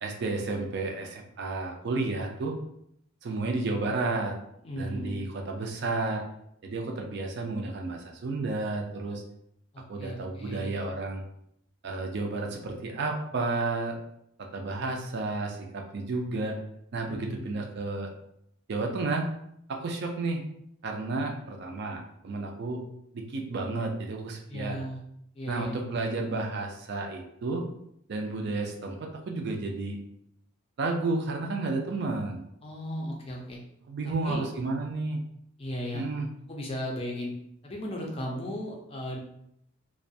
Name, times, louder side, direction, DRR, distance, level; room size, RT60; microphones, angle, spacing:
voice 1, 0.0-2.6 3.2-4.4 4.8-6.2 6.6-9.2 9.9-11.2 11.8-14.0 14.5-16.6 16.9-18.1 18.7-19.3 19.7-20.4 20.8-22.8 23.1-24.8 25.5-27.6 28.1-30.0 30.8-32.4 33.9-35.2 35.9-36.3, right 3 dB, 55° right, 2 dB, 0.4 m, -31 dB
voice 2, 4.6-5.2 9.7-10.8 17.0-17.5 24.5-25.0 25.3-25.9 32.6-33.6 34.0-34.4 35.6-36.1 36.5-37.3 37.6-39.2, equal, 25° left, -1 dB, 0.4 m, -36 dB
2.3 x 2.1 x 2.6 m, 0.74 s
head